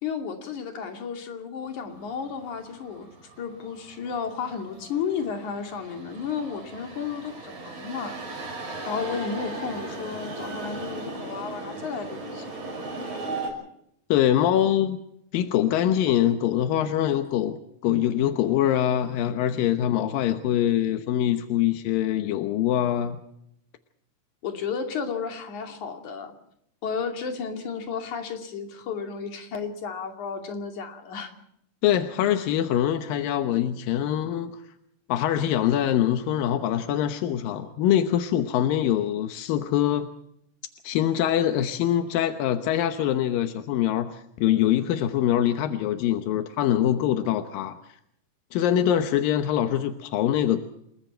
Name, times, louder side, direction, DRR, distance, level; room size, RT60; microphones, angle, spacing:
voice 1, 0.0-3.1 3.4-8.2 8.9-12.4 24.4-26.3 26.8-31.3, left 6 dB, 60° left, 4 dB, 4.0 m, -33 dB
Train arrive, 1.8-13.5, right 2 dB, 90° right, 7.8 m, -37 dB
voice 2, 14.1-15.0 15.3-23.2 31.8-34.6 35.1-40.1 40.8-47.8 48.5-50.6, left 11 dB, 85° left, 7 dB, 2.8 m, -24 dB
29.5 x 21.0 x 4.5 m, 0.75 s
omnidirectional pair, 3.9 m